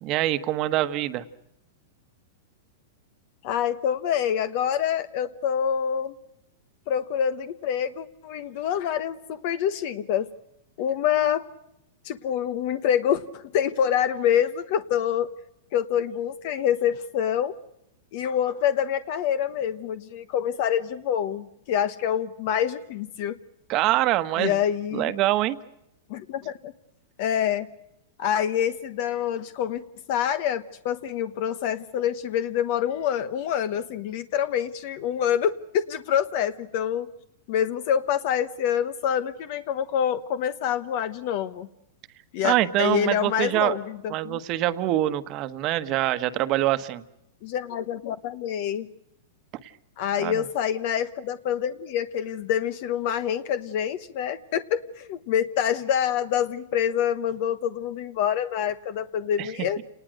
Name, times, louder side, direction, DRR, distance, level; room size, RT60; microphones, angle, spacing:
voice 1, 0.0-1.2 23.7-24.5 24.9-25.6 42.4-43.8 44.1-47.0 49.6-49.7 50.2-50.4 59.4-59.5 59.8-59.9, right 15 dB, 40° right, 11 dB, 1.3 m, -24 dB
voice 2, 3.4-6.1 6.9-10.3 10.8-11.4 12.0-15.3 15.7-17.5 18.1-23.3 24.4-25.1 26.1-26.7 27.2-27.7 28.2-29.8 30.1-37.1 37.5-41.7 42.3-43.8 44.2-44.4 47.4-48.9 50.0-59.8, left 9 dB, 50° left, 11 dB, 1.1 m, -26 dB
29.5 x 19.5 x 6.5 m, 0.83 s
hypercardioid pair, 140°, 0 cm